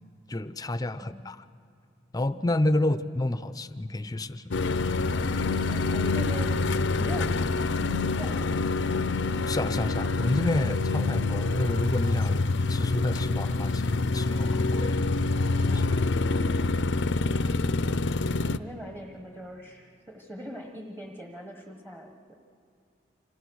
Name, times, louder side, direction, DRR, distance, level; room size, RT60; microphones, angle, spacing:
voice 1, 0.3-1.4 2.1-4.4 9.5-15.0 15.6-16.0, left 1 dB, 20° left, 13 dB, 0.6 m, -29 dB
voice 2, 0.9-1.3 2.8-3.0 5.6-6.6 7.0-7.8 8.0-8.6 18.5-22.4, equal, 10° right, 2 dB, 1.3 m, -42 dB
sound 1, 4.5-18.6, left 3 dB, 70° left, 0.6 m, -26 dB
28.0 x 26.5 x 6.3 m, 2.5 s
head